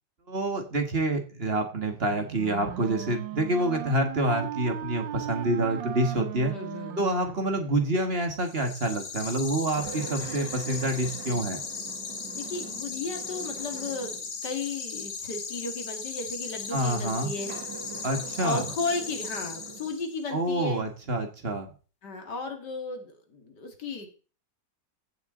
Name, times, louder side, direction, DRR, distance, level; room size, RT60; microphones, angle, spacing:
voice 1, 0.3-6.5 7.0-11.6 16.7-17.3 18.0-18.7 20.3-21.7, right 1 dB, 35° right, 5 dB, 1.9 m, -27 dB
Wind instrument woodwind instrument, 2.0-8.1, right 10 dB, 85° right, 1.5 m, -38 dB
voice 2, 6.5-7.0 12.4-17.5 18.4-20.9 22.0-24.1, left 3 dB, 65° left, 4 dB, 2.8 m, -35 dB
sound 1, 8.4-20.2, left 5 dB, 90° left, 2.7 m, -37 dB
sound 2, 9.7-14.4 15.1-15.2 17.3-19.9, right 6 dB, 70° right, 2.1 m, -43 dB
15.5 x 7.1 x 3.9 m, 0.37 s
omnidirectional pair, 2.0 m